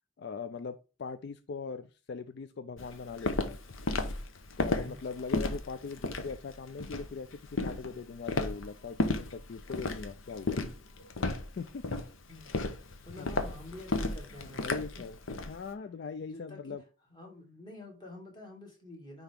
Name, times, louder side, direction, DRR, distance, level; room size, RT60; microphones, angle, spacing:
voice 1, 0.2-3.6 4.6-10.6 11.6-11.8 13.1-13.4 14.4-15.2 15.5-16.8, left 5 dB, 55° left, 11 dB, 0.3 m, -41 dB
Walk footsteps, 2.8-15.6, left 2 dB, 75° left, 0.9 m, -34 dB
voice 2, 4.6-5.0 12.3-12.5 13.0-14.7 16.3-16.7 17.1-19.2, left 2 dB, 20° left, 0 dB, 2.2 m, -47 dB
9.6 x 3.5 x 3.5 m, 0.33 s
head